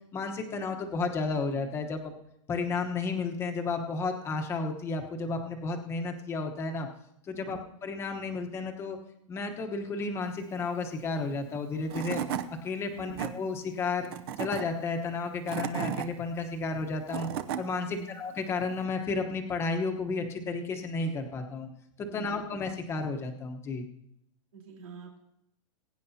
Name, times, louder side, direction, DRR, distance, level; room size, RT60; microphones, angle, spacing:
voice 1, 0.1-2.1 2.5-6.9 7.2-9.0 9.3-12.2 12.6-14.1 14.4-17.3 17.6-21.7 22.0-23.9, left 3 dB, 15° left, 3 dB, 1.0 m, -32 dB
Tools / Wood, 11.5-11.6 11.9-12.5 12.9-13.3 14.0-14.6 15.3-16.1 16.8-17.6, right 9 dB, 45° right, 0.7 m, -33 dB
voice 2, 22.1-22.5 24.5-25.2, right 6 dB, 90° right, -2 dB, 3.7 m, -45 dB
21.5 x 9.4 x 2.8 m, 0.76 s
supercardioid pair, 160°, 17 cm